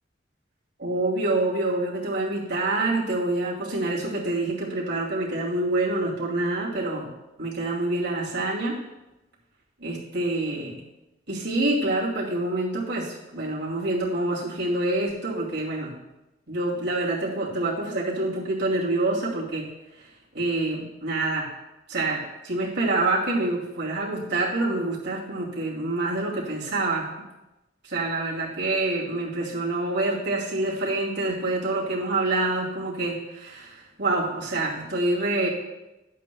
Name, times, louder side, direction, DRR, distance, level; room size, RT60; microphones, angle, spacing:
voice 1, 0.8-7.1 7.4-8.8 9.8-10.8 11.3-16.0 16.5-19.7 20.0-20.1 20.3-21.5 21.9-27.3 27.8-35.5, right 2 dB, 60° right, -6 dB, 2.6 m, -26 dB
11.5 x 8.2 x 2.3 m, 0.97 s
head